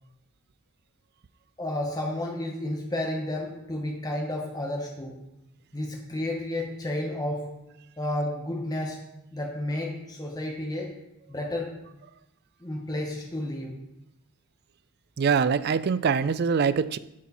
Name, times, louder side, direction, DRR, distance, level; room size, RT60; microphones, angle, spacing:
voice 1, 1.6-5.3 5.7-7.6 8.0-11.9 12.6-13.9, left 1 dB, 20° left, 0 dB, 0.9 m, -32 dB
voice 2, 15.2-17.0, right 6 dB, 50° right, 15 dB, 0.4 m, -23 dB
12.0 x 4.4 x 4.2 m, 0.89 s
head